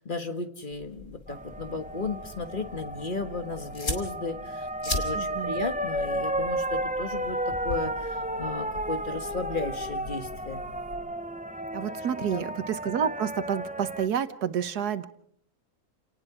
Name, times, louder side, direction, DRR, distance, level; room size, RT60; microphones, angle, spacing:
voice 1, 0.0-10.7 11.9-12.4, left 3 dB, 35° left, 7 dB, 1.6 m, -35 dB
sound 1, 0.7-11.0, left 2 dB, 50° left, 2.9 m, -40 dB
sound 2, 1.3-14.1, right 1 dB, 10° right, 0.4 m, -33 dB
voice 2, 5.1-5.6 11.7-15.1, right 8 dB, 85° right, 12 dB, 1.6 m, -29 dB
29.0 x 19.0 x 4.9 m, 0.63 s
omnidirectional pair, 1.6 m